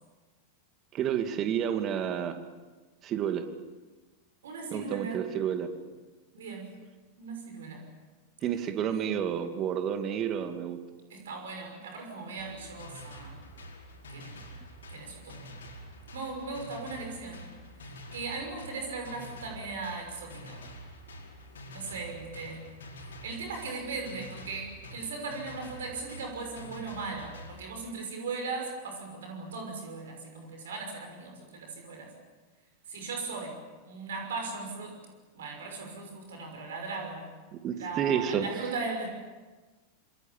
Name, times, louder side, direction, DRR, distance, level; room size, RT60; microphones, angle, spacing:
voice 1, 0.9-2.4 3.0-3.4 4.7-5.7 8.4-10.8 37.5-38.7, right 8 dB, 30° right, 7 dB, 2.5 m, -30 dB
voice 2, 4.4-5.2 6.3-6.7 7.2-7.8 8.9-9.1 11.1-13.4 14.1-14.4 14.9-15.4 16.1-17.5 18.1-20.6 21.7-22.6 23.2-32.1 32.9-33.6 33.8-35.0 35.3-37.3 37.8-39.1, right 4 dB, 60° right, 3 dB, 6.1 m, -38 dB
sound 1, 12.4-27.6, equal, 65° left, 5.1 m, -47 dB
27.0 x 25.0 x 7.4 m, 1.3 s
figure-of-eight pair, 90°, 0 cm